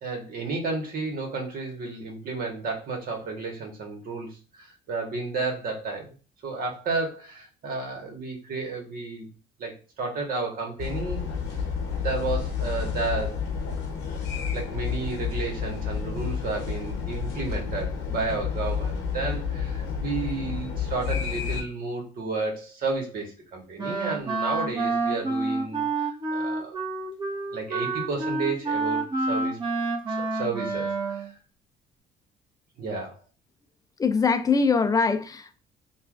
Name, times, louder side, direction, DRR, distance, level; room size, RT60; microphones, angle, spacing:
voice 1, 0.0-6.1 6.4-9.3 9.6-11.2 12.0-13.4 14.5-25.8 26.3-26.7 27.5-29.6 30.2-31.3 32.8-33.1, right 3 dB, 60° right, 1.4 m, -32 dB
sound 1, 10.8-21.6, left 6 dB, 90° left, 0.8 m, -30 dB
Wind instrument woodwind instrument, 23.8-31.3, right 3 dB, 30° right, 1.1 m, -28 dB
voice 2, 34.0-35.6, left 5 dB, 20° left, 0.4 m, -22 dB
5.4 x 2.4 x 2.4 m
cardioid pair, 110°, 17 cm